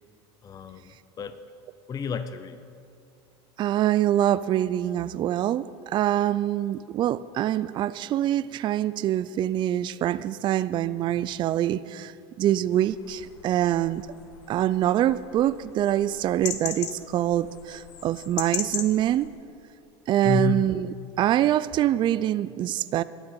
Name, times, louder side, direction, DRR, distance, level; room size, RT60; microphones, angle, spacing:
voice 1, 0.4-1.4 1.9-2.6 20.2-20.6, left 6 dB, 25° left, 11 dB, 0.6 m, -30 dB
voice 2, 3.6-12.1 12.4-14.0 14.5-19.3 20.1-20.9 21.2-23.0, right 12 dB, 35° right, 16 dB, 0.3 m, -25 dB
sound 1, 12.7-19.3, left 8 dB, 80° left, 1.0 m, -38 dB
12.0 x 6.3 x 9.0 m, 2.5 s
supercardioid pair, 110°, 14 cm